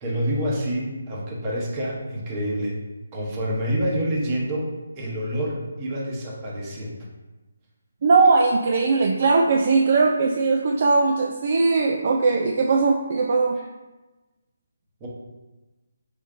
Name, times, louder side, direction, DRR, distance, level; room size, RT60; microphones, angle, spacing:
voice 1, 0.0-2.8 3.1-7.0 15.0-15.1, equal, 20° right, -3 dB, 0.9 m, -27 dB
voice 2, 8.0-13.6, right 4 dB, 40° right, 1 dB, 0.4 m, -19 dB
5.0 x 4.2 x 2.5 m, 1.1 s
hypercardioid pair, 170°, 0 cm